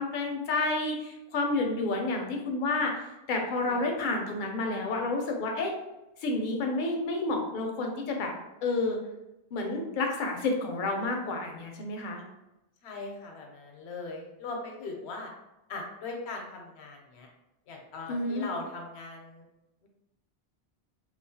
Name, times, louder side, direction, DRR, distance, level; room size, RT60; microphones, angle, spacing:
voice 1, 0.0-3.0 3.3-5.7 6.2-8.3 8.6-9.0 9.5-12.2 18.1-18.5, left 2 dB, 60° left, 2 dB, 0.6 m, -30 dB
voice 2, 3.5-3.9 12.8-15.3 15.7-17.3 17.7-19.5 19.8-19.9, left 3 dB, 80° left, 1 dB, 0.9 m, -40 dB
2.9 x 2.1 x 2.7 m, 0.94 s
omnidirectional pair, 1.1 m